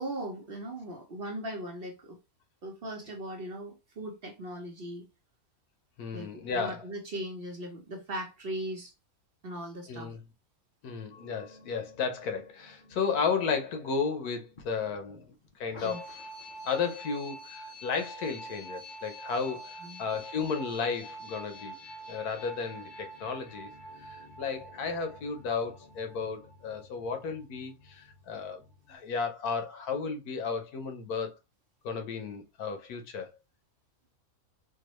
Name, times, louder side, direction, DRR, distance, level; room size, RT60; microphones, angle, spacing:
voice 1, 0.0-2.2 2.6-5.1 6.1-8.9 9.4-10.1 15.8-16.0 19.8-20.0, right 1 dB, 50° right, 0.8 m, -39 dB
voice 2, 6.0-6.9 9.9-10.2 10.8-16.2 16.6-21.8 22.1-23.7 24.0-28.6 28.9-31.4 31.8-33.3, left 5 dB, 85° left, 1.3 m, -33 dB
sound 1, 11.1-28.9, right 1 dB, 40° left, 0.8 m, -47 dB
4.5 x 2.3 x 3.0 m
omnidirectional pair, 1.6 m